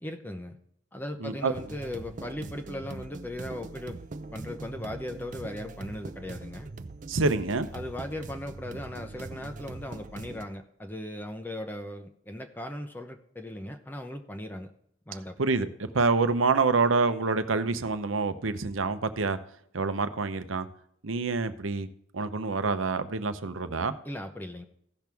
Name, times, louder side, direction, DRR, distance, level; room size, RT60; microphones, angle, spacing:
voice 1, 0.0-0.6 0.9-4.0 4.3-6.7 7.7-14.7 15.1-15.4 24.0-24.7, left 1 dB, 10° left, 6 dB, 0.6 m, -38 dB
voice 2, 1.2-1.5 7.1-7.7 15.4-19.4 19.7-20.7 21.0-21.9 22.1-23.9, right 4 dB, 85° right, 10 dB, 0.8 m, -27 dB
sound 1, 1.5-10.4, right 3 dB, 40° right, 0.5 m, -42 dB
16.0 x 6.1 x 3.5 m, 0.71 s
head